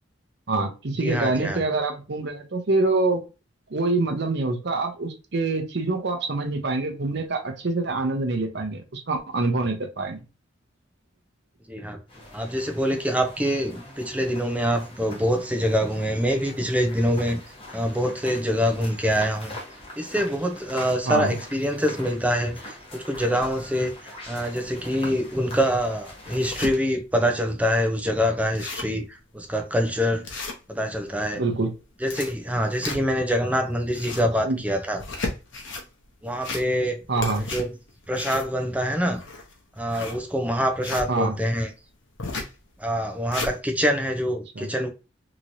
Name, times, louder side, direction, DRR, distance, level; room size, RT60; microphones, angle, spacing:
voice 1, 0.5-3.2 3.7-10.2 21.1-21.4 31.3-31.7 34.4-34.6 37.1-37.5 41.1-41.3 44.5-44.7, right 3 dB, 65° right, 0.8 m, -25 dB
voice 2, 1.0-1.6 11.7-12.0 12.3-17.4 17.7-19.5 20.0-23.9 24.3-30.2 30.7-31.4 32.0-35.0 36.2-37.0 37.4-37.7 38.1-39.2 39.8-41.7 42.8-44.9, equal, 10° right, 0.6 m, -25 dB
sound 1, 12.1-26.8, left 1 dB, 30° left, 1.0 m, -43 dB
sound 2, 25.4-25.5 26.0-26.7 27.3-27.4 27.7-27.8 28.1-28.2 28.4-29.0 29.5-29.6 30.2-31.0 31.8-33.3 33.7-34.4 34.9-35.9 36.3-36.9 37.2-41.1 42.2-42.6 43.0-43.5, left 3 dB, 85° left, 0.9 m, -34 dB
3.0 x 3.0 x 2.6 m
head